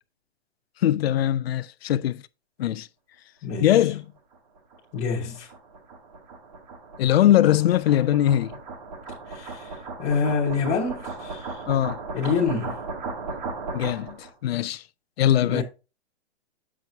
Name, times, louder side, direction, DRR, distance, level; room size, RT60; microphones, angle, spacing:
voice 1, 0.8-2.2 2.6-2.9 3.6-4.0 7.0-8.5 11.7-12.0 13.7-14.8 15.2-15.6, left 12 dB, 60° left, 0.5 m, -21 dB
voice 2, 3.4-3.9 4.9-5.5 9.3-11.6 12.1-12.8 15.4-15.6, left 5 dB, 20° left, 1.2 m, -27 dB
sound 1, 4.3-14.3, right 3 dB, 35° right, 1.4 m, -37 dB
7.5 x 6.0 x 2.6 m
hypercardioid pair, 165°, 34 cm